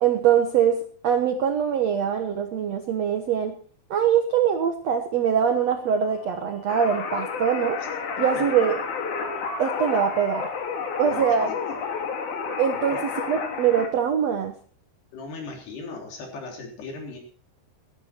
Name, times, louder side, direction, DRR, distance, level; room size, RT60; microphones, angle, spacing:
voice 1, 0.0-3.6 3.9-7.8 8.2-8.8 9.6-10.5 11.0-11.5 12.6-13.0 13.3-14.6, right 8 dB, 70° right, 6 dB, 1.5 m, -23 dB
sound 1, 5.4-13.8, left 2 dB, 90° left, 7.0 m, -50 dB
sound 2, 6.7-13.9, left 5 dB, 55° left, 3.1 m, -30 dB
voice 2, 12.7-13.0 15.1-17.2, left 3 dB, 70° left, 1 dB, 5.7 m, -38 dB
17.5 x 13.0 x 4.4 m, 0.43 s
omnidirectional pair, 4.9 m